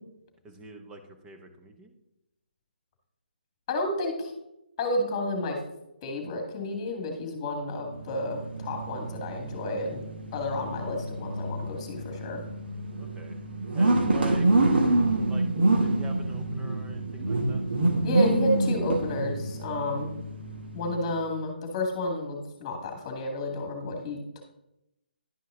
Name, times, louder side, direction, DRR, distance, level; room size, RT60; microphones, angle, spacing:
voice 1, 0.4-2.0 13.0-13.4 13.7-14.5 15.3-15.4 15.8-17.6, right 2 dB, 10° right, 4 dB, 0.8 m, -45 dB
voice 2, 3.7-4.3 4.8-5.6 6.0-10.1 10.3-12.4 18.0-20.1 20.7-24.4, left 1 dB, 25° left, 3 dB, 1.9 m, -31 dB
sound 1, 7.8-21.2, right 2 dB, 75° right, 1.4 m, -27 dB
11.0 x 5.5 x 3.7 m, 0.86 s
hypercardioid pair, 155°, 6 cm